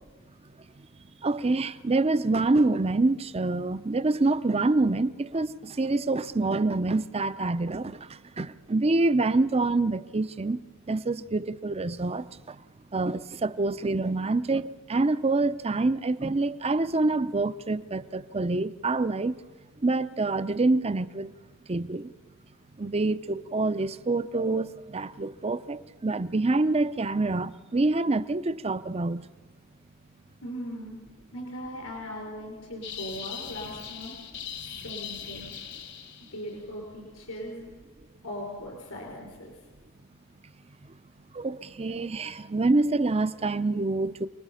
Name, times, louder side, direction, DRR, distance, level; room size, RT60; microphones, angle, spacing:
voice 1, 1.2-10.6 10.9-12.6 12.9-19.3 19.8-21.3 21.7-22.1 22.8-29.3 41.3-44.3, right 2 dB, 30° right, 0.6 m, -26 dB
voice 2, 30.4-31.0 31.3-34.1 34.6-35.5 36.3-37.7 38.2-39.5, equal, 75° left, 5.6 m, -39 dB
sound 1, 32.8-36.5, left 8 dB, 55° left, 1.6 m, -40 dB
29.0 x 20.5 x 5.6 m
head